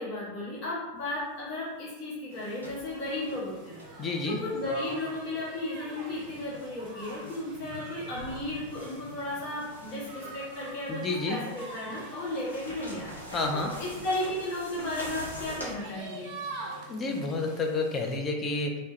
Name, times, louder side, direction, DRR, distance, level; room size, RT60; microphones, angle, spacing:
voice 1, 0.0-13.1 13.5-16.3, left 1 dB, 45° left, -7 dB, 0.8 m, -35 dB
sound 1, 1.0-1.2 2.6-2.9 3.3-3.4 3.8-3.9 4.5-5.4 5.6-7.5 8.0-15.7, equal, 85° left, 0.5 m, -43 dB
sound 2, 2.3-18.2, right 2 dB, 40° right, 0.5 m, -46 dB
voice 2, 4.0-4.4 10.9-11.4 13.3-13.7 16.9-18.8, left 3 dB, 25° left, 2 dB, 0.4 m, -30 dB
2.2 x 2.0 x 2.8 m, 1.1 s
figure-of-eight pair, 90°, 0 cm